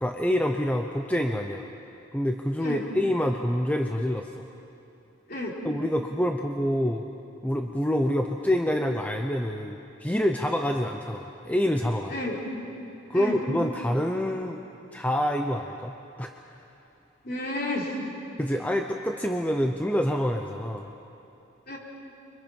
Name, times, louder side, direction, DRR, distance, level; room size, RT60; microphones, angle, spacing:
voice 1, 0.0-1.7 2.1-4.4 5.6-7.0 7.4-12.2 13.1-14.6 14.9-16.3 18.4-20.9, equal, 5° left, 3 dB, 0.7 m, -27 dB
voice 2, 12.1-12.4 13.1-13.4 17.2-18.0 21.7-21.8, left 1 dB, 45° left, -3 dB, 4.1 m, -31 dB
29.5 x 24.5 x 5.4 m, 2.9 s
head